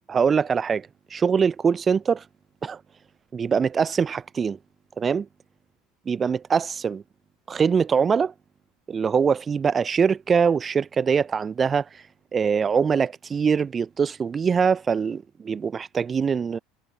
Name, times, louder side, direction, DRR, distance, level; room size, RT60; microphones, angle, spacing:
voice 1, 0.1-2.2 2.6-2.8 3.3-4.6 5.0-5.3 6.1-7.0 7.5-8.3 8.9-11.9 12.3-16.6, right 6 dB, 25° right, 0.9 m, -23 dB
figure-of-eight pair, 70°, 0 cm